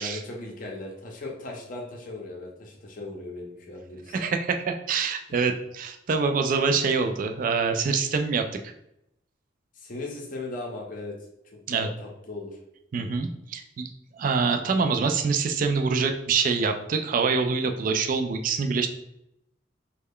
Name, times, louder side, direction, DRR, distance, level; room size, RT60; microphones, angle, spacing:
voice 1, 0.0-4.2 9.7-11.2 11.5-12.6, left 2 dB, 45° left, 0 dB, 0.6 m, -37 dB
voice 2, 4.1-8.7 11.7-11.9 12.9-13.9 14.2-18.9, right 5 dB, 45° right, 6 dB, 0.3 m, -25 dB
3.2 x 2.2 x 3.6 m, 0.81 s
head